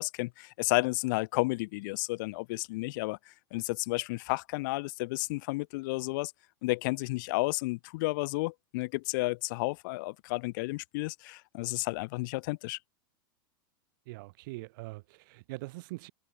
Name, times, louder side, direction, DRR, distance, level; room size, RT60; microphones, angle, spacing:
voice 1, 0.0-6.3 6.6-12.8, left 23 dB, 55° left, 1.3 m, -32 dB
voice 2, 14.1-16.1, right 22 dB, 55° right, 7.8 m, -42 dB
supercardioid pair, 150°, 13 cm